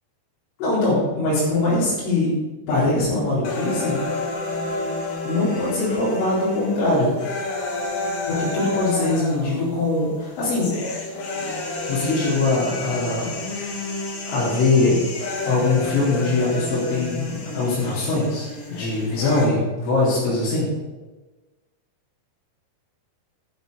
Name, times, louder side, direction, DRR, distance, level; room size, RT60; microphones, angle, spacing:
voice 1, 0.6-2.3 2.7-4.0 5.2-7.1 8.3-10.7 11.9-13.8 14.2-15.0 15.4-20.7, left 2 dB, 90° left, -10 dB, 6.4 m, -22 dB
sound 1, 3.4-19.5, left 2 dB, 60° left, 1.5 m, -30 dB
12.0 x 12.0 x 4.0 m, 1.2 s
omnidirectional pair, 5.2 m